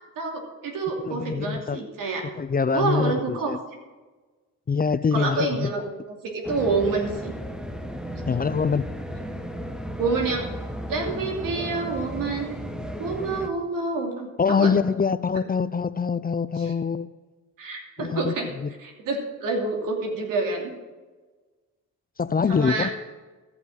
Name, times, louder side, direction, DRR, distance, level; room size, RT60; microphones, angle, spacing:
voice 1, 0.0-2.2 2.7-3.5 5.1-5.9 6.2-7.3 10.0-10.5 10.9-12.5 13.0-14.7 16.6-16.7 17.6-18.5 18.8-20.7 22.5-22.9, right 3 dB, 85° right, 2 dB, 2.8 m, -27 dB
voice 2, 1.0-1.8 2.4-3.6 4.7-5.7 8.3-8.9 14.4-17.1 18.0-18.3 18.6-18.7 22.2-22.9, left 5 dB, 30° left, 15 dB, 0.5 m, -24 dB
sound 1, 6.4-13.5, equal, ahead, 1.2 m, -34 dB
14.5 x 5.9 x 7.6 m, 1.3 s
cardioid pair, 75°, 32 cm